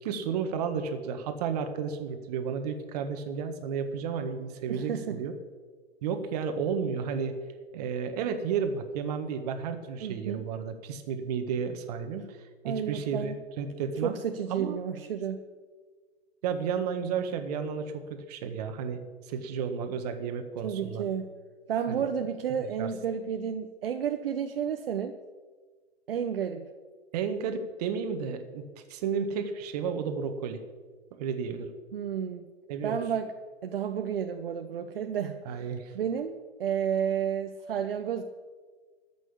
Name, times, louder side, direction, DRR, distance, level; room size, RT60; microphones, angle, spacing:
voice 1, 0.0-5.3 6.0-7.4 7.7-14.1 14.5-14.8 16.4-21.0 21.9-22.0 22.6-22.9 27.1-28.6 28.9-30.6 31.1-31.7 32.7-33.0 35.4-35.9, right 6 dB, 35° right, 7 dB, 1.6 m, -32 dB
voice 2, 4.7-5.2 10.0-10.4 12.6-13.4 14.0-15.4 20.6-21.3 21.7-25.1 26.1-26.6 31.9-32.4 32.8-33.3 33.6-35.4 35.9-38.2, right 8 dB, 55° right, 6 dB, 1.0 m, -31 dB
14.0 x 6.3 x 8.6 m, 1.4 s
hypercardioid pair, 140°, 34 cm